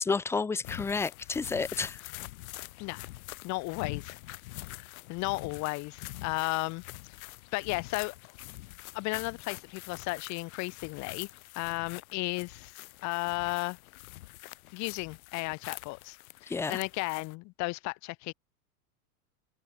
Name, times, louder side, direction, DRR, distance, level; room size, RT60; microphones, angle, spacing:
voice 1, 0.0-2.0 16.5-16.8, left 4 dB, 5° left, 0.5 m, -30 dB
sound 1, 0.6-17.3, left 18 dB, 65° left, 5.9 m, -45 dB
voice 2, 3.4-4.2 4.8-6.8 7.5-8.1 8.9-11.3 11.5-13.8 14.7-16.2 16.4-18.3, left 24 dB, 40° left, 1.2 m, -34 dB
supercardioid pair, 140°, 45 cm